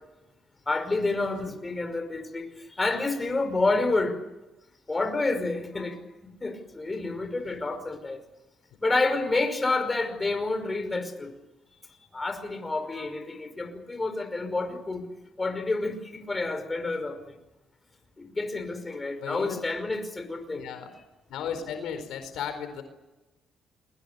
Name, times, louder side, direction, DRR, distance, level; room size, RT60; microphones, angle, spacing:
voice 1, 0.7-2.5 2.8-4.2 4.9-6.0 6.4-8.2 8.8-11.3 12.1-15.0 15.4-17.2 18.2-20.6, left 3 dB, 20° left, 7 dB, 5.4 m, -29 dB
voice 2, 19.2-19.6 20.5-20.9 21.3-22.8, left 8 dB, 85° left, 8 dB, 4.5 m, -35 dB
29.0 x 22.5 x 6.9 m, 1.0 s
cardioid pair, 90°, 0 cm